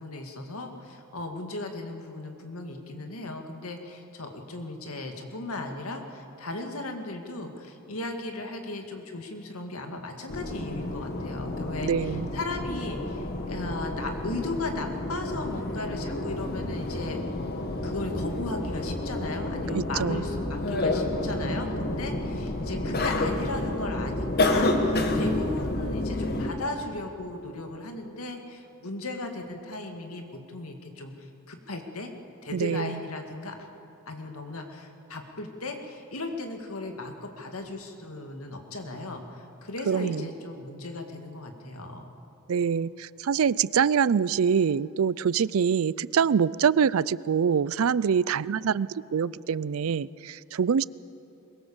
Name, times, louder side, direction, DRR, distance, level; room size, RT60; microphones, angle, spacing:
voice 1, 0.0-17.2 17.8-32.1 32.4-33.6 34.1-42.1, left 2 dB, 90° left, 4 dB, 2.2 m, -36 dB
sound 1, 10.3-26.5, left 2 dB, 45° left, 1.7 m, -29 dB
voice 2, 11.8-12.3 19.7-20.3 32.5-33.0 39.9-40.3 42.5-50.8, right 7 dB, 70° right, 20 dB, 0.4 m, -25 dB
22.5 x 22.0 x 7.2 m, 2.9 s
head